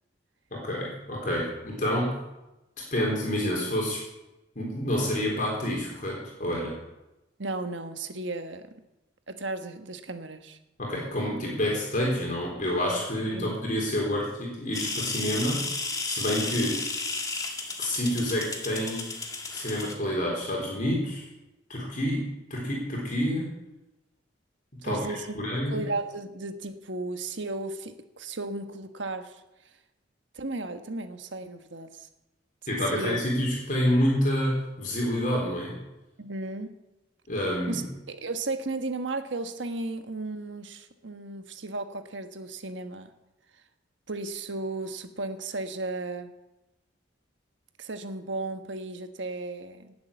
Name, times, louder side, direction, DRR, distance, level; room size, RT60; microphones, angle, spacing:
voice 1, 0.5-2.2 2.9-4.0 4.6-6.7 10.8-15.6 16.0-16.8 17.8-19.0 19.5-21.3 21.7-23.5 24.7-25.1 25.3-25.8 32.7-35.8 37.3-37.8, equal, 45° left, -2 dB, 3.8 m, -28 dB
voice 2, 7.4-8.6 9.3-10.6 13.3-13.5 24.8-25.4 25.7-29.4 30.3-32.1 32.9-33.2 36.2-36.7 37.7-43.1 44.1-46.3 47.8-49.9, right 2 dB, 75° right, 8 dB, 1.4 m, -35 dB
sound 1, 14.7-19.9, left 3 dB, 20° left, 1.8 m, -33 dB
18.5 x 7.8 x 7.0 m, 0.97 s
head